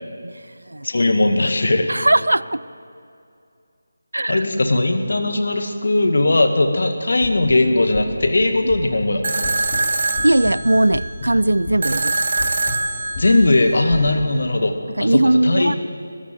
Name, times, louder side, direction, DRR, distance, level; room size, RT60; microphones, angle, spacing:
voice 1, 0.8-1.9 4.3-9.4 13.2-15.8, left 2 dB, 55° left, 6 dB, 2.0 m, -18 dB
voice 2, 1.9-2.6 4.1-4.5 10.2-12.2 15.0-15.7, right 1 dB, 70° right, 19 dB, 0.5 m, -18 dB
sound 1, 7.2-14.3, left 1 dB, 30° left, 2.4 m, -33 dB
sound 2, 9.2-14.3, right 2 dB, 45° right, 1.5 m, -24 dB
20.0 x 15.0 x 9.2 m, 2.5 s
figure-of-eight pair, 160°, 0 cm